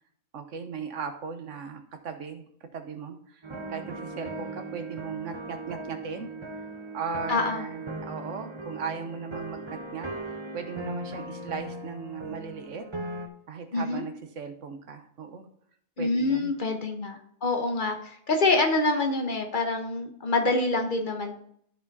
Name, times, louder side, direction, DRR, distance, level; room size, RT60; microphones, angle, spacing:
voice 1, 0.3-2.5 2.7-3.4 3.7-6.3 6.9-10.1 10.5-12.8 13.5-15.5 16.0-16.5, right 6 dB, 70° right, 7 dB, 1.3 m, -37 dB
sound 1, 3.4-13.3, right 1 dB, 25° right, 0.7 m, -38 dB
voice 2, 7.3-7.6 13.7-14.0 16.0-21.4, left 3 dB, 40° left, 4 dB, 1.1 m, -26 dB
13.0 x 4.8 x 4.1 m, 0.66 s
omnidirectional pair, 1.3 m